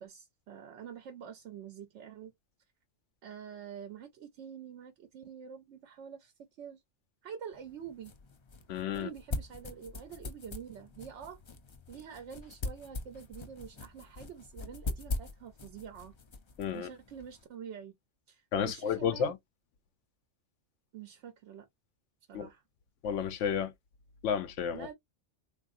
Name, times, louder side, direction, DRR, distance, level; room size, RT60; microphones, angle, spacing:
voice 1, 0.0-2.3 3.2-6.3 6.6-6.8 7.2-8.1 8.9-11.4 11.9-16.1 16.7-17.9 18.3-19.3 20.9-21.7 22.3-22.6 24.7-24.9, right 8 dB, 80° right, 0.9 m, -46 dB
sound 1, 7.5-17.4, left 3 dB, 40° left, 0.4 m, -42 dB
voice 2, 8.7-9.1 16.6-16.9 18.5-19.4 22.3-22.5 23.0-23.7 24.2-24.9, left 7 dB, 85° left, 0.9 m, -31 dB
3.6 x 2.6 x 2.4 m
omnidirectional pair, 1.2 m